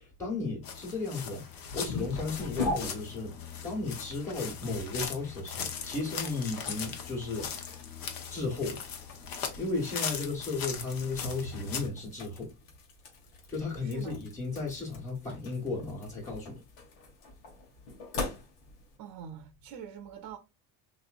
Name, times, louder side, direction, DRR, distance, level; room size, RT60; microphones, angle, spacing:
voice 1, 0.0-3.3 3.6-7.5 8.3-8.8 9.6-12.5 13.5-16.6, left 3 dB, 5° left, 1.4 m, -35 dB
sound 1, 0.6-11.9, left 7 dB, 55° left, 1.0 m, -39 dB
sound 2, 1.0-19.0, left 2 dB, 85° left, 1.8 m, -43 dB
voice 2, 13.8-14.2 19.0-20.4, right 8 dB, 55° right, 0.7 m, -44 dB
4.0 x 3.0 x 2.5 m
cardioid pair, 135°, 41 cm